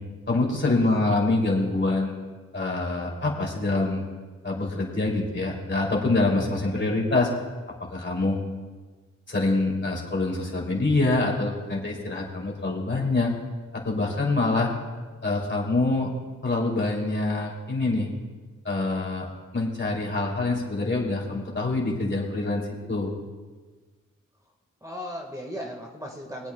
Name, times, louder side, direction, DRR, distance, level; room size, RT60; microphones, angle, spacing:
voice 1, 0.3-2.1 2.5-4.0 4.4-7.3 7.9-8.4 9.3-13.3 13.7-14.7 15.2-16.1 16.4-18.1 18.6-19.3 19.5-23.1, left 2 dB, 35° left, -1 dB, 3.0 m, -25 dB
voice 2, 0.8-1.2 24.8-26.5, equal, 10° right, 0 dB, 1.7 m, -37 dB
23.5 x 8.3 x 2.3 m, 1.4 s
cardioid pair, 50°, 32 cm